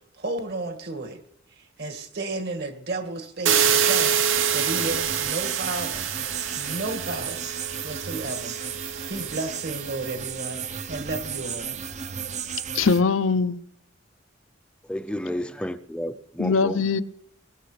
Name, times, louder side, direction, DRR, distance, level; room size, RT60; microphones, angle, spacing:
voice 1, 0.2-1.2 1.6-6.1 6.6-7.5 7.8-11.8, right 2 dB, 55° right, 2.0 m, -33 dB
sound 1, 3.5-10.3, right 8 dB, 75° right, 1.0 m, -26 dB
sound 2, 4.3-13.0, right 7 dB, 35° right, 0.6 m, -34 dB
voice 2, 12.7-13.6 16.4-17.0, left 4 dB, 90° left, 0.7 m, -21 dB
voice 3, 14.8-16.9, left 1 dB, 5° left, 0.5 m, -31 dB
23.0 x 14.5 x 3.4 m
head